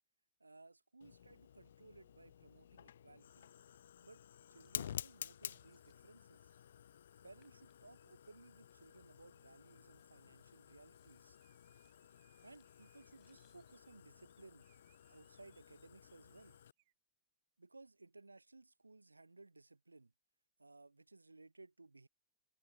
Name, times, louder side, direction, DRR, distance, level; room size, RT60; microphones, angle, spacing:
voice 1, 0.4-3.5 4.0-4.2 4.5-6.6 7.2-11.4 12.4-14.7 15.1-16.6 17.6-20.1 20.6-22.1, right 3 dB, 80° right, 0.6 m, -60 dB
Fire, 1.0-16.7, left 9 dB, 65° left, 0.4 m, -52 dB
sound 1, 5.2-15.1, left 31 dB, 45° left, 3.2 m, -85 dB
sound 2, 11.3-15.9 16.3-16.9, right 21 dB, 50° right, 6.0 m, -79 dB
figure-of-eight pair, 90°, 0 cm